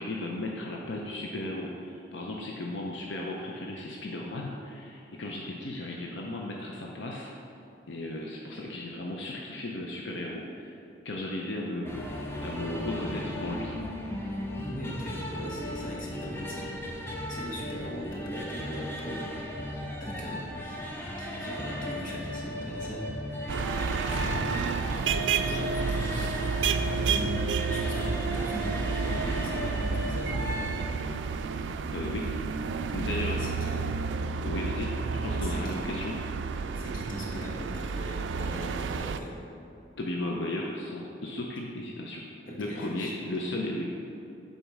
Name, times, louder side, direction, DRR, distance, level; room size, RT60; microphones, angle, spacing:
voice 1, 0.0-7.3 7.9-10.7 11.0-12.1 12.4-13.7 31.9-32.3 32.9-33.5 34.4-34.9 35.2-36.1 40.0-42.3 42.6-43.8, left 1 dB, 80° left, -1 dB, 0.6 m, -35 dB
sound 1, 11.8-30.8, equal, 15° left, 0.6 m, -36 dB
voice 2, 14.6-19.4 20.0-24.7 25.5-26.4 26.9-27.4 27.7-30.6 33.4-33.8 35.4-35.8 36.8-39.4 42.5-43.2, equal, 45° left, -4 dB, 1.3 m, -40 dB
sound 2, 23.5-39.2, right 5 dB, 85° right, 0.3 m, -31 dB
7.1 x 4.2 x 4.8 m, 2.8 s
head